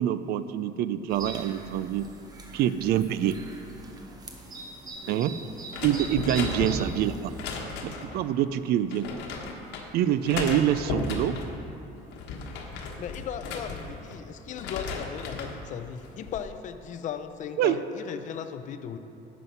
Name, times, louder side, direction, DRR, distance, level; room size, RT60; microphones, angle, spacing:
voice 1, 0.0-2.1 2.5-3.4 5.1-5.4 5.8-7.1 7.8-9.1 9.9-11.3 17.6-17.8, right 11 dB, 65° right, 13 dB, 0.4 m, -25 dB
sound 1, 1.1-7.6, right 3 dB, 20° right, 0.9 m, -42 dB
sound 2, 5.7-8.2 8.9-9.9 10.2-11.5 12.0-14.2 14.5-15.6 16.0-16.4, left 4 dB, 80° left, 1.3 m, -35 dB
voice 2, 6.2-6.6 10.4-10.6 13.0-19.0, left 8 dB, 45° left, 9 dB, 0.6 m, -37 dB
11.0 x 7.5 x 5.5 m, 2.9 s
cardioid pair, 155°, 18 cm